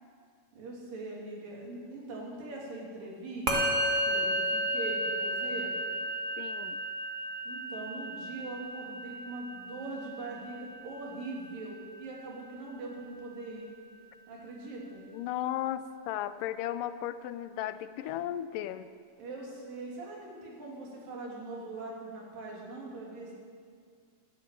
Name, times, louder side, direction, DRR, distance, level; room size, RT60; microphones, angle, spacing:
voice 1, 0.5-5.7 7.5-13.7 14.3-15.0 19.2-23.3, right 2 dB, 85° right, -3 dB, 4.5 m, -41 dB
Musical instrument, 3.5-13.0, right 1 dB, 35° right, 1.2 m, -33 dB
voice 2, 6.4-6.8 15.1-18.9, left 12 dB, 85° left, 12 dB, 2.3 m, -35 dB
12.0 x 11.5 x 9.1 m, 2.1 s
omnidirectional pair, 3.8 m